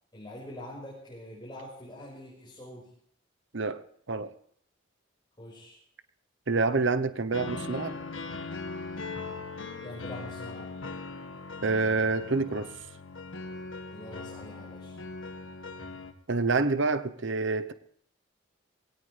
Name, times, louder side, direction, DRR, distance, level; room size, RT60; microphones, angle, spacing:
voice 1, 0.1-2.9 5.4-5.8 9.8-10.7 13.9-15.0, left 1 dB, 20° left, -5 dB, 5.5 m, -44 dB
voice 2, 6.5-8.0 11.6-12.7 16.3-17.7, right 3 dB, 70° right, 12 dB, 0.9 m, -27 dB
sound 1, 7.3-16.1, left 3 dB, 80° left, 1.7 m, -40 dB
21.5 x 17.5 x 3.4 m, 0.64 s
head